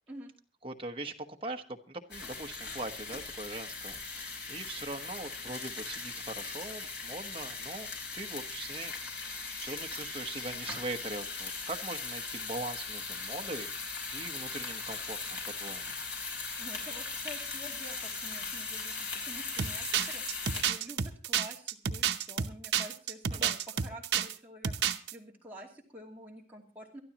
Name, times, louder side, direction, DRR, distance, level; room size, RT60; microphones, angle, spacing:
voice 1, 0.6-1.1 1.4-7.9 8.1-8.9 9.2-13.7 14.1-15.9 23.3-23.5, right 2 dB, 30° right, 4 dB, 1.1 m, -41 dB
sound 1, 2.1-20.6, left 4 dB, 80° left, 4.9 m, -39 dB
voice 2, 16.6-27.0, equal, 10° right, -3 dB, 2.5 m, -48 dB
sound 2, 19.6-24.3 24.6-25.1, right 8 dB, 75° right, 0.8 m, -30 dB
23.5 x 12.5 x 2.9 m, 0.37 s
head